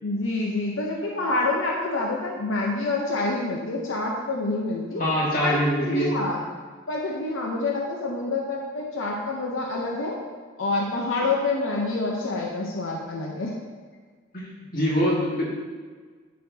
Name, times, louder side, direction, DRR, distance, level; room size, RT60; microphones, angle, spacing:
voice 1, 0.0-5.0 5.4-6.4 6.9-10.2 10.6-13.5, left 2 dB, 85° left, -2 dB, 0.8 m, -27 dB
voice 2, 5.0-6.1 14.3-14.4 14.7-15.4, equal, 45° left, -6 dB, 1.9 m, -23 dB
10.0 x 4.4 x 2.8 m, 1.5 s
head